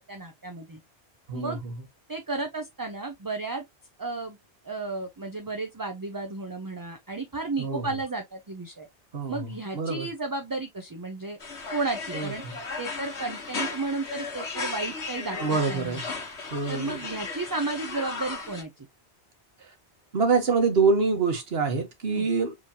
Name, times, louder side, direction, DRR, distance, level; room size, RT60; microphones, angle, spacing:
voice 1, 0.1-0.8 1.3-1.6 2.1-3.6 4.0-4.4 4.6-8.9 9.3-11.4 11.7-12.4 12.8-16.0 16.7-18.9 22.1-22.3, right 3 dB, 25° right, 0.5 m, -33 dB
voice 2, 1.3-1.7 7.6-7.8 9.1-9.5 9.7-10.1 12.1-12.5 15.4-16.0 16.5-17.0 20.1-22.5, right 4 dB, 65° right, 1.4 m, -25 dB
sound 1, 11.4-18.6, left 4 dB, 80° left, 1.4 m, -35 dB
4.8 x 3.1 x 2.8 m
omnidirectional pair, 1.1 m